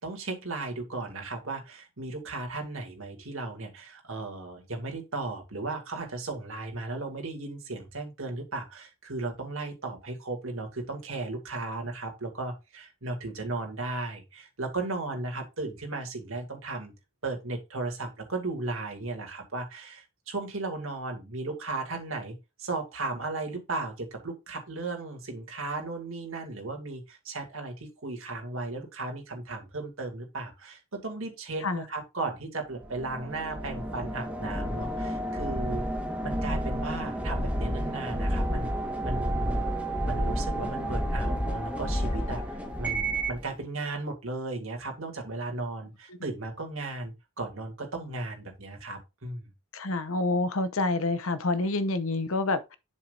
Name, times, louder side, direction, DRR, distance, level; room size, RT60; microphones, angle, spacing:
voice 1, 0.0-16.9 17.2-35.8 36.2-38.7 39.0-39.6 40.0-49.5, right 2 dB, 65° right, 2.2 m, -36 dB
sound 1, 32.8-43.4, right 1 dB, 5° right, 1.2 m, -30 dB
voice 2, 49.7-52.8, left 2 dB, 70° left, 0.9 m, -28 dB
7.4 x 7.3 x 2.5 m
head